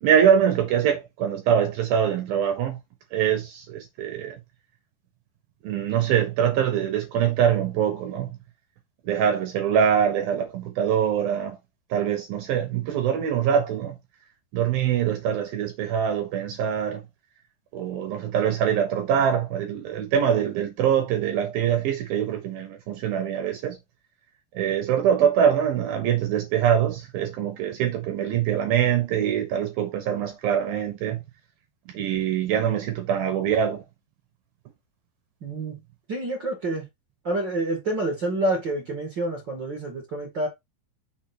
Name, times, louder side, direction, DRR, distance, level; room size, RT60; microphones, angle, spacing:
voice 1, 0.0-2.8 3.1-4.4 5.6-8.4 9.0-11.6 11.9-14.0 14.5-17.0 17.7-23.8 24.5-31.2 31.9-33.8, right 8 dB, 75° right, 2.3 m, -23 dB
voice 2, 35.4-35.8 36.1-36.8 37.2-40.5, right 2 dB, 45° right, 1.5 m, -28 dB
6.3 x 3.1 x 5.9 m
omnidirectional pair, 5.1 m